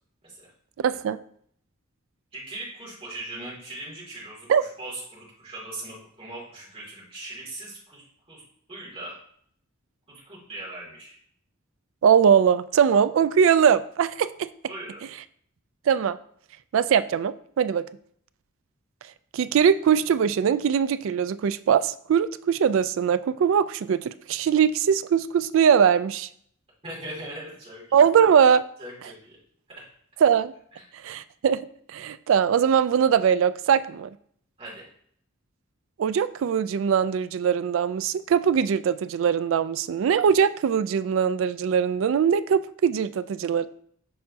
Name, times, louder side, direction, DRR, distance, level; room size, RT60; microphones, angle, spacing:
voice 1, 0.8-1.2 4.5-4.6 12.0-14.5 15.9-16.2 16.7-17.9 19.3-26.3 27.9-28.6 30.2-30.5 31.0-31.6 31.9-34.1 36.0-43.7, right 7 dB, 65° right, 15 dB, 0.3 m, -21 dB
voice 2, 2.3-4.5 4.8-8.4 8.7-9.2 10.1-11.2 14.7-15.0 26.8-28.0 28.8-29.4 29.7-29.9 30.7-30.8 34.6-34.9, right 2 dB, 30° right, -5 dB, 2.6 m, -39 dB
6.7 x 5.2 x 2.8 m, 0.64 s
head